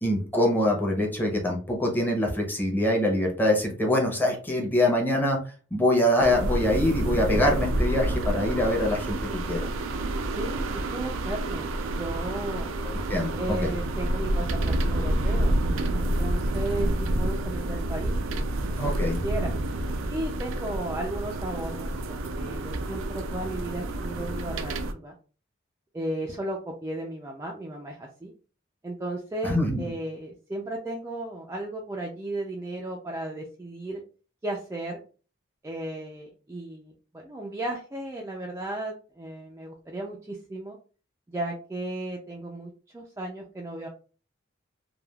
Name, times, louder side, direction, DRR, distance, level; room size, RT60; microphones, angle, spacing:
voice 1, 0.0-5.4 5.7-9.7 12.8-13.4 13.6-13.7 18.8-19.2 29.4-29.8, left 1 dB, 10° left, 0 dB, 0.7 m, -24 dB
sound 1, 6.2-24.9, right 1 dB, 85° right, 0.4 m, -28 dB
voice 2, 10.3-12.7 13.4-15.6 16.0-18.2 18.8-18.9 19.2-19.5 20.1-25.1 25.9-28.3 28.8-34.0 34.4-35.0 35.6-40.8 41.3-43.9, right 1 dB, 15° right, -1 dB, 0.3 m, -35 dB
3.2 x 2.3 x 2.3 m, 0.37 s
head